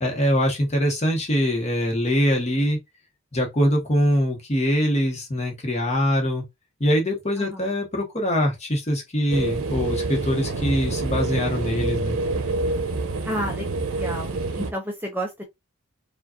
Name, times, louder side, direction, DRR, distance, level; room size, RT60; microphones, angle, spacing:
voice 1, 0.0-2.8 3.3-6.4 6.8-12.2, equal, 30° left, 1.1 m, -23 dB
voice 2, 7.4-7.7 13.3-13.7 14.0-15.4, equal, 10° right, 0.5 m, -31 dB
sound 1, 9.3-14.7, right 3 dB, 80° right, 0.9 m, -27 dB
4.9 x 2.5 x 2.4 m
head